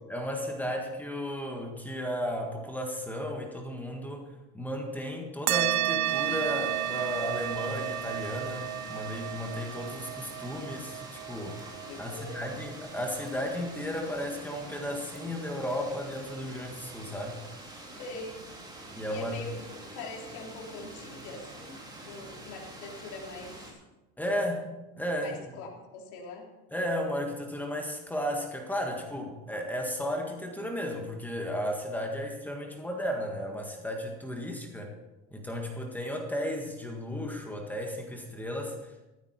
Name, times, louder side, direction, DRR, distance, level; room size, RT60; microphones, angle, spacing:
voice 1, 0.1-11.7 12.0-17.4 17.7-17.8 18.9-19.4 24.2-24.7 25.0-25.4 26.7-34.9 35.3-39.1, equal, 5° left, 2 dB, 1.7 m, -34 dB
sound 1, 5.5-14.4, right 13 dB, 60° right, 0.9 m, -33 dB
sound 2, 6.0-23.7, right 2 dB, 15° right, 3.2 m, -46 dB
voice 2, 11.9-12.6 18.0-18.4 19.1-19.7 19.9-21.8 22.0-23.6 25.2-26.5, left 3 dB, 65° left, -1 dB, 3.7 m, -43 dB
14.5 x 12.5 x 4.4 m, 1.0 s
cardioid pair, 140°, 32 cm